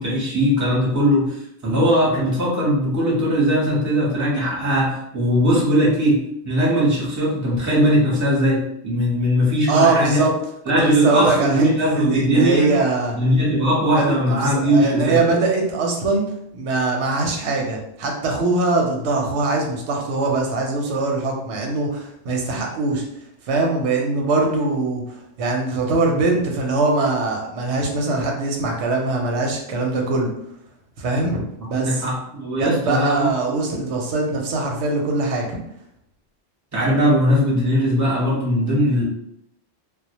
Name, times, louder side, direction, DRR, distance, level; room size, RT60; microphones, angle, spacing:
voice 1, 0.0-6.2 6.4-10.2 10.7-12.7 13.1-15.2 31.6-33.3 36.7-39.0, equal, 20° right, -5 dB, 0.7 m, -19 dB
voice 2, 9.7-10.3 10.8-13.2 13.9-16.3 16.5-23.0 23.5-30.3 31.0-31.4 31.7-32.0 32.6-35.6, right 3 dB, 90° right, 1 dB, 0.9 m, -22 dB
2.1 x 2.0 x 2.8 m, 0.75 s
omnidirectional pair, 1.1 m